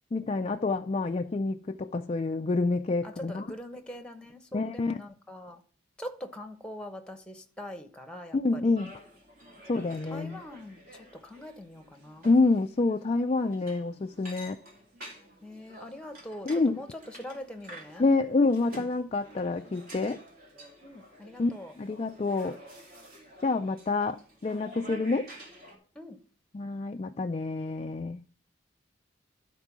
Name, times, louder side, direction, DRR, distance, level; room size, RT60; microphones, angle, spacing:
voice 1, 0.1-3.4 4.5-5.0 8.3-8.9 9.7-10.4 12.2-14.6 16.5-16.8 18.0-20.2 21.4-21.5 21.8-22.6 23.4-25.3 26.5-28.2, left 3 dB, 30° left, 0.3 m, -27 dB
voice 2, 3.0-5.6 6.0-8.8 9.7-12.3 15.4-18.1 20.8-21.7 24.9-25.1 25.9-26.2, left 1 dB, 5° left, 1.0 m, -43 dB
sound 1, 8.7-25.8, right 1 dB, 50° right, 2.3 m, -50 dB
12.0 x 4.5 x 5.9 m
head